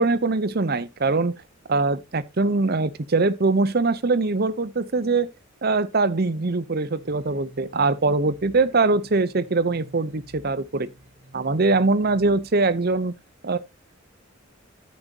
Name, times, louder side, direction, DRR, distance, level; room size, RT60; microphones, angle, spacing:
voice 1, 0.0-1.3 1.7-5.3 5.6-10.9 11.3-13.1 13.4-13.6, right 3 dB, 50° right, 0.7 m, -22 dB
sound 1, 6.9-13.0, equal, 30° right, 2.3 m, -51 dB
10.5 x 9.1 x 2.8 m
head